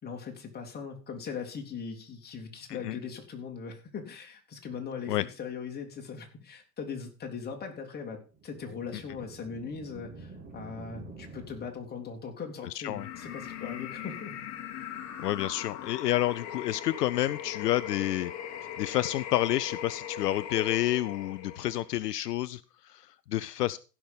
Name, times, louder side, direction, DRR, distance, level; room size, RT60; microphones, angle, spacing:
voice 1, 0.0-14.3, left 6 dB, 20° left, 2 dB, 2.9 m, -40 dB
sound 1, 8.3-12.2, right 3 dB, 20° right, 3.5 m, -48 dB
voice 2, 12.7-13.1 15.2-18.3 18.8-23.8, left 14 dB, 75° left, 16 dB, 0.6 m, -29 dB
sound 2, 12.9-22.0, left 10 dB, 35° left, 1.8 m, -39 dB
15.5 x 6.0 x 5.2 m, 0.34 s
hypercardioid pair, 105°, 49 cm